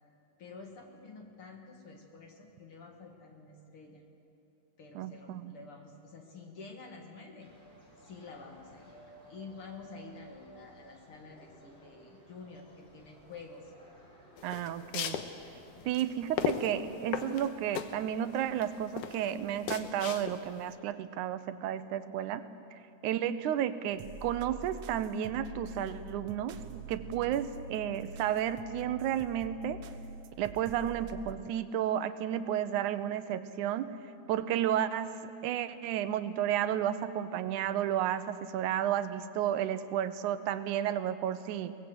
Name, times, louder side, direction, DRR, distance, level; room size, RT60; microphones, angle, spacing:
voice 1, 0.4-4.0 4.8-7.5 8.0-13.7 15.7-15.9, left 4 dB, 50° left, 2 dB, 2.3 m, -49 dB
voice 2, 5.0-5.5 14.4-15.2 15.9-29.8 30.4-34.0 34.3-35.2 35.4-41.8, right 10 dB, 85° right, 12 dB, 2.2 m, -32 dB
sound 1, 7.4-20.2, right 1 dB, 20° left, 4.6 m, -57 dB
sound 2, 14.4-20.7, left 8 dB, 85° left, 2.5 m, -36 dB
sound 3, 23.9-31.3, right 3 dB, 65° right, 1.7 m, -46 dB
23.0 x 19.0 x 7.9 m, 2.8 s
omnidirectional pair, 3.5 m